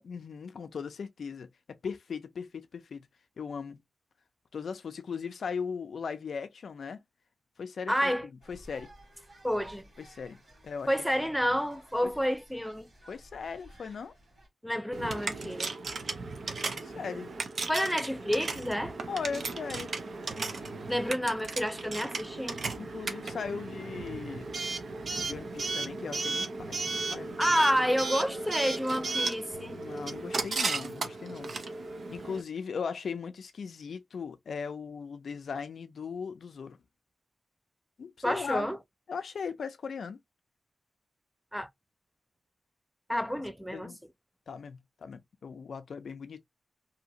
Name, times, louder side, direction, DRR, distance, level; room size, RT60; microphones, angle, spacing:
voice 1, 0.0-3.1 3.4-3.8 4.5-7.0 7.6-8.1 8.5-8.9 10.0-10.9 11.5-11.6 12.0-12.1 13.1-14.1 16.7-17.3 19.1-19.9 22.8-24.5 25.2-27.4 29.7-31.5 32.1-36.8 38.0-38.7 39.1-40.2 43.7-44.0 44.5-46.4, left 6 dB, 75° left, 0.4 m, -38 dB
voice 2, 7.9-8.3 9.4-9.9 10.9-12.9 14.6-15.7 17.7-18.9 20.9-22.6 27.4-29.8 38.2-38.8 41.5-41.7 43.1-43.9, equal, ahead, 0.3 m, -29 dB
sound 1, 8.4-14.5, right 1 dB, 40° right, 1.6 m, -55 dB
Coin (dropping) / Alarm, 14.9-32.4, right 3 dB, 60° right, 0.6 m, -35 dB
sound 2, 20.2-22.4 23.1-25.6 26.6-29.0 29.5-32.1, equal, 90° right, 0.9 m, -57 dB
2.7 x 2.4 x 2.8 m
wide cardioid pair, 115°, 0 cm